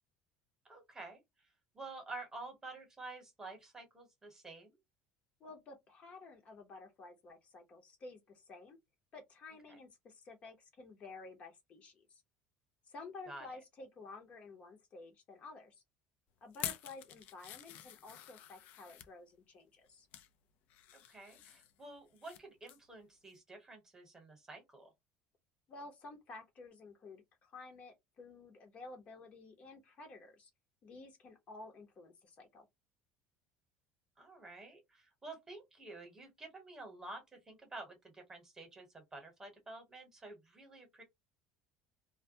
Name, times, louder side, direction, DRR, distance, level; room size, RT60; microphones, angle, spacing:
voice 1, 0.7-1.2 1.7-4.8 9.7-9.8 13.3-13.5 20.9-24.9 34.2-41.0, right 2 dB, 15° right, 1.0 m, -50 dB
voice 2, 5.4-8.8 9.1-12.2 12.8-15.8 16.4-20.1 25.7-30.5 30.8-32.7, left 3 dB, 40° left, 0.7 m, -52 dB
sound 1, 16.5-19.1 19.7-20.3 20.7-22.4 22.7-22.9 23.3-23.4, left 12 dB, 60° left, 0.4 m, -47 dB
2.2 x 2.1 x 2.6 m
cardioid pair, 130°, 3 cm